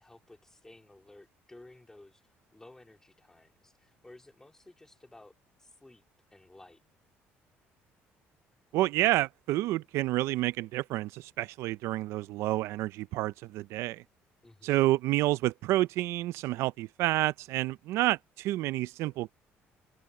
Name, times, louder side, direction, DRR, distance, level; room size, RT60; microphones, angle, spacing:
voice 1, 0.0-6.0 6.3-6.8 14.4-14.8, left 2 dB, 10° left, 3.2 m, -55 dB
voice 2, 8.7-14.0 14.6-19.3, right 16 dB, 80° right, 0.4 m, -29 dB
cardioid pair, 115°, 5 cm